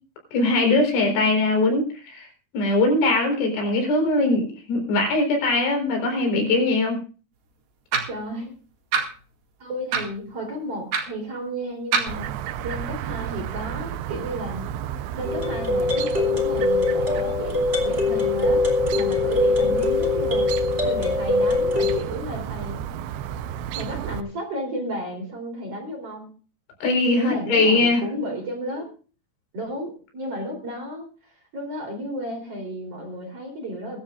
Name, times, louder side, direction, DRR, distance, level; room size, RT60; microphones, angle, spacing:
voice 1, 0.3-7.0 26.8-28.0, left 2 dB, 85° left, 2 dB, 6.8 m, -21 dB
sound 1, 7.9-8.2 8.9-9.1 9.9-10.1 10.9-11.1 11.9-12.1, right 6 dB, 60° right, 3.7 m, -23 dB
voice 2, 8.1-8.5 9.6-12.3 12.6-14.7 15.2-18.6 18.9-20.5 20.8-22.8 23.7-26.3 27.2-28.9 29.5-34.0, equal, 35° right, 3 dB, 4.1 m, -33 dB
Chirp tweet, 12.1-24.2, right 10 dB, 80° right, 2.9 m, -32 dB
sound 2, 15.2-22.0, left 3 dB, 20° right, 2.0 m, -22 dB
22.5 x 12.5 x 2.5 m, 0.38 s
omnidirectional pair, 5.4 m